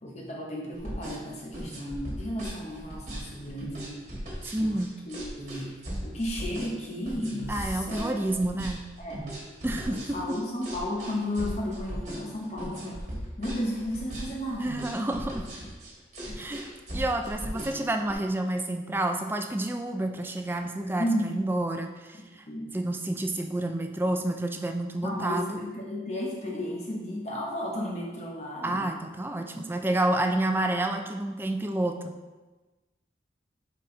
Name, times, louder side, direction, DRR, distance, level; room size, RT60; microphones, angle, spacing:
voice 1, 0.0-4.0 4.6-8.2 9.0-9.3 9.9-13.0 13.4-14.7 16.2-16.5 21.0-21.5 22.1-22.7 25.0-28.8 29.5-29.7, left 1 dB, 35° left, -2 dB, 0.8 m, -34 dB
sound 1, 0.7-18.1, right 1 dB, 40° right, 1.5 m, -38 dB
voice 2, 4.4-4.9 7.5-8.8 9.6-10.4 14.5-15.5 16.4-22.4 22.7-25.6 28.6-32.1, right 1 dB, 10° right, 5 dB, 0.3 m, -29 dB
6.2 x 4.2 x 3.7 m, 1.2 s
head